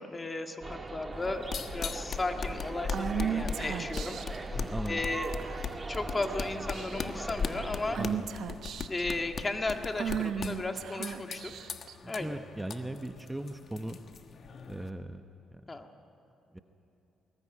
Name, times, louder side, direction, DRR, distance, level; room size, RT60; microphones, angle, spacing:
voice 1, 0.0-1.4 1.7-4.6 4.9-5.3 5.9-8.0 8.9-11.5 12.1-12.4 15.7-15.9, left 2 dB, 25° left, 5 dB, 1.8 m, -35 dB
sound 1, 0.6-8.1, right 3 dB, 25° right, 1.6 m, -40 dB
sound 2, 1.1-14.9, left 5 dB, 55° left, 1.3 m, -39 dB
Female speech woman speaking / Whispering, 2.9-4.4 5.4-5.8 6.2-6.4 6.7-7.2 8.0-9.0 10.0-11.9, right 8 dB, 70° right, 1.1 m, -35 dB
voice 2, 4.5-5.0 8.0-8.3 12.0-14.0 14.6-15.2 15.5-15.6 16.5-16.6, right 1 dB, 10° right, 6 dB, 1.0 m, -38 dB
21.5 x 18.5 x 9.8 m, 2.8 s
cardioid pair, 90°, 0 cm